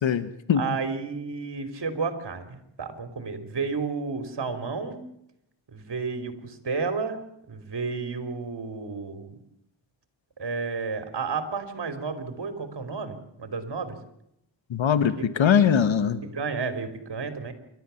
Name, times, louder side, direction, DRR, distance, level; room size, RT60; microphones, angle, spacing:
voice 1, 0.0-0.6 14.7-16.2, left 8 dB, 90° left, 13 dB, 1.3 m, -21 dB
voice 2, 0.5-5.0 5.7-7.2 7.5-9.4 10.4-14.0 15.2-15.3 16.2-17.5, right 4 dB, 60° right, 9 dB, 3.4 m, -32 dB
28.5 x 13.0 x 7.1 m, 0.78 s
cardioid pair, 75°, 45 cm